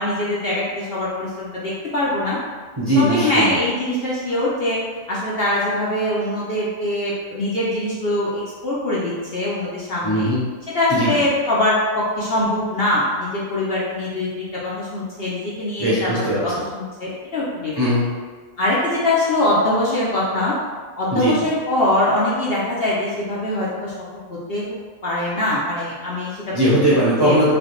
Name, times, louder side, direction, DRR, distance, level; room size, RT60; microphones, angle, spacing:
voice 1, 0.0-2.4 2.9-4.8 5.1-10.3 10.7-16.1 16.4-17.9 18.6-20.5 21.0-24.8 25.0-26.6 27.2-27.3, left 1 dB, 55° left, -7 dB, 0.8 m, -23 dB
voice 2, 2.8-3.6 10.0-10.4 10.9-11.2 15.8-16.4 17.8-18.1 21.1-21.4 26.5-27.5, right 1 dB, 25° right, -9 dB, 0.6 m, -19 dB
5.0 x 2.3 x 3.0 m, 1.5 s
omnidirectional pair, 1.5 m